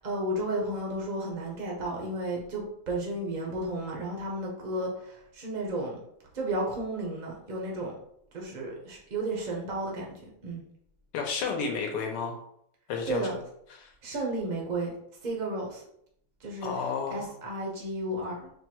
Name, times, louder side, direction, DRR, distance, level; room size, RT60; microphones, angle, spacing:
voice 1, 0.0-6.0 6.3-7.9 8.3-10.6 13.1-13.3 14.0-14.9 15.2-15.8 16.4-16.7 17.1-18.5, right 1 dB, 60° right, -2 dB, 0.5 m, -33 dB
voice 2, 11.1-12.4 12.9-13.3 13.7-13.9 16.6-17.3, left 5 dB, 85° left, 1 dB, 1.3 m, -31 dB
4.5 x 2.2 x 2.9 m, 0.72 s
omnidirectional pair, 1.9 m